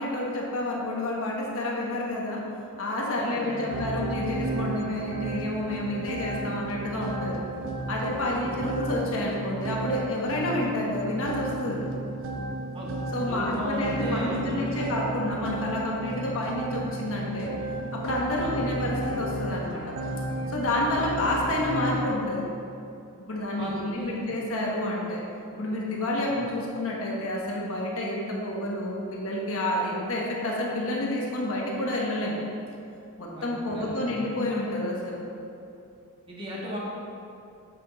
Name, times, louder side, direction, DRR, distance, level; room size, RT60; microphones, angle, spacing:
voice 1, 0.0-2.4 2.8-7.4 7.9-11.8 13.1-17.5 17.9-19.8 20.5-22.5 23.2-25.2 25.5-32.4 33.2-35.2, left 1 dB, 65° left, -3 dB, 1.2 m, -29 dB
voice 2, 3.2-4.0 8.3-8.5 12.7-12.9 13.2-14.9 18.4-18.5 23.5-24.3 26.2-26.4 33.3-34.2 36.3-36.8, equal, 25° right, -6 dB, 1.8 m, -36 dB
sound 1, 3.7-22.1, right 2 dB, 60° right, 0.6 m, -33 dB
8.1 x 6.0 x 4.0 m, 2.6 s
head